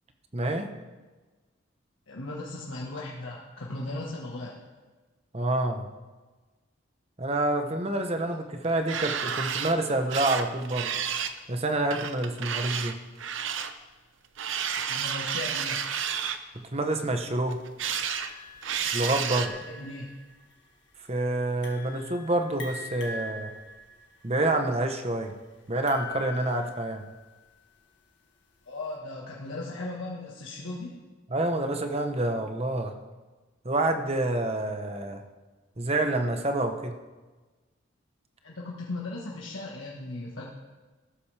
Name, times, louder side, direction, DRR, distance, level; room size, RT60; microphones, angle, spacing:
voice 1, 0.3-0.7 5.3-5.9 7.2-10.9 11.5-13.0 16.7-17.6 18.9-19.6 21.1-23.5 24.2-25.3 25.7-27.0 31.3-32.9 33.6-35.2 35.8-37.0, right 2 dB, 30° right, 6 dB, 1.0 m, -27 dB
voice 2, 2.1-4.6 14.9-15.8 19.6-20.1 28.6-31.0 38.4-40.5, left 2 dB, 75° left, -4 dB, 1.6 m, -37 dB
sound 1, 8.6-9.7 10.1-11.4 11.9-13.7 14.4-16.4 17.5-18.3 18.6-19.5, right 8 dB, 70° right, 0.7 m, -31 dB
sound 2, 17.9-27.2, left 3 dB, 60° left, 2.1 m, -42 dB
15.0 x 13.0 x 3.4 m, 1.3 s
head